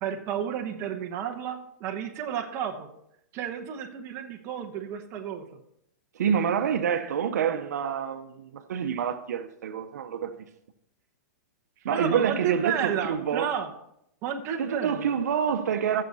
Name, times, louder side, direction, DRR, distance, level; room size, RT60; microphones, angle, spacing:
voice 1, 0.0-2.9 3.3-5.4 11.9-13.7 14.2-15.1, right 8 dB, 30° right, 1.1 m, -31 dB
voice 2, 6.1-10.3 11.8-13.5 14.6-16.0, right 8 dB, 75° right, 0.9 m, -27 dB
14.5 x 6.7 x 4.1 m
hypercardioid pair, 155°, 9 cm